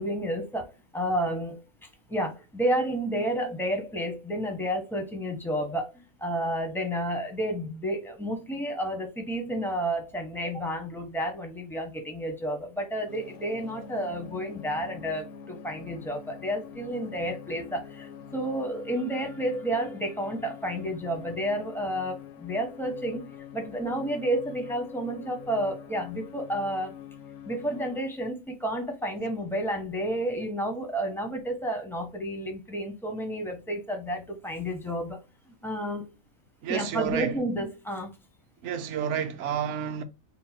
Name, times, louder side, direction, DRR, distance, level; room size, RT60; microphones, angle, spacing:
voice 1, 0.0-1.6 2.1-26.9 27.5-35.2 35.6-36.1 36.7-38.1, right 1 dB, 5° left, 0.4 m, -31 dB
sound 1, 13.1-28.0, left 7 dB, 65° left, 0.8 m, -45 dB
voice 2, 36.6-37.4 38.6-40.0, right 8 dB, 65° right, 0.8 m, -30 dB
3.9 x 2.2 x 4.1 m
omnidirectional pair, 1.5 m